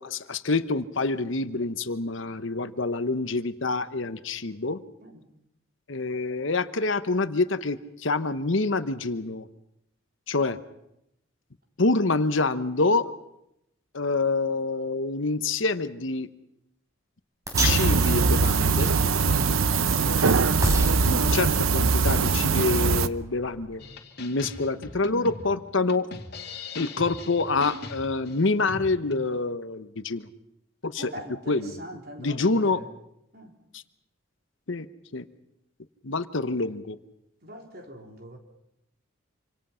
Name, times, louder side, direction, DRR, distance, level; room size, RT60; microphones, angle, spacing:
voice 1, 0.0-4.8 5.9-9.5 10.3-10.6 11.8-13.1 13.9-16.3 17.6-19.0 21.0-23.8 24.2-26.1 26.8-30.3 30.8-31.1 31.5-31.8 32.2-32.8 33.7-33.8 34.7-34.9 35.1-35.3 36.0-37.0, left 3 dB, 65° left, 12 dB, 1.0 m, -26 dB
sound 1, 17.5-23.8, equal, 15° right, 3.7 m, -34 dB
sound 2, 17.5-23.1, right 4 dB, 80° right, 0.8 m, -22 dB
sound 3, 23.8-29.2, left 3 dB, 50° left, 2.3 m, -40 dB
voice 2, 31.0-32.9 33.3-33.5 37.4-38.4, equal, 45° right, 3 dB, 3.5 m, -42 dB
26.5 x 26.0 x 5.7 m, 0.82 s
head